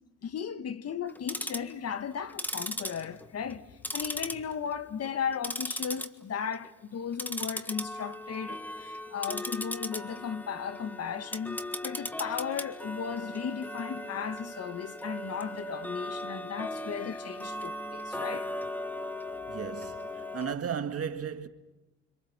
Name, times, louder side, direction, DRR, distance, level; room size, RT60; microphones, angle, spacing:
voice 1, 0.2-18.5, left 7 dB, 55° left, 1.3 m, -36 dB
Tick-tock, 1.1-1.7 2.3-3.6 3.8-4.7 5.0-6.1 6.4-6.7 7.1-20.5, left 1 dB, 5° left, 1.5 m, -37 dB
voice 2, 19.5-21.5, right 7 dB, 50° right, 1.9 m, -35 dB
26.5 x 25.5 x 7.3 m
cardioid pair, 90°, 30 cm